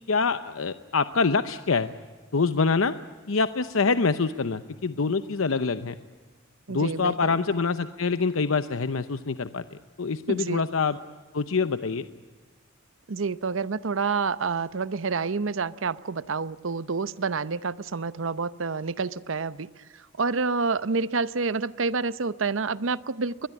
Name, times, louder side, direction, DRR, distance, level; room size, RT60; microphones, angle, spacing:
voice 1, 0.1-1.9 2.3-3.0 3.3-5.9 6.7-11.0 11.3-12.1, left 4 dB, 90° left, 11 dB, 0.8 m, -25 dB
voice 2, 6.7-7.4 10.3-10.6 13.1-23.5, right 4 dB, 70° right, 16 dB, 0.7 m, -28 dB
22.0 x 21.5 x 9.7 m, 1.4 s
head